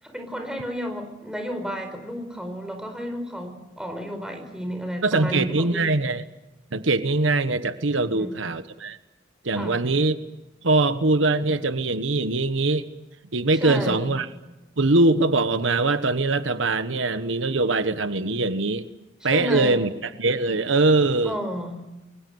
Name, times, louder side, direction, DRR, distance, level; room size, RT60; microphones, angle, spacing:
voice 1, 0.0-6.0 8.0-8.3 9.5-9.8 13.6-14.1 19.2-19.8 21.2-21.8, equal, 5° right, 5 dB, 4.5 m, -32 dB
voice 2, 5.0-6.2 6.7-9.0 9.4-10.2 10.6-12.9 13.3-14.3 14.8-18.8 19.2-21.4, right 2 dB, 80° right, 11 dB, 1.2 m, -22 dB
29.0 x 22.5 x 7.9 m, 1.0 s
head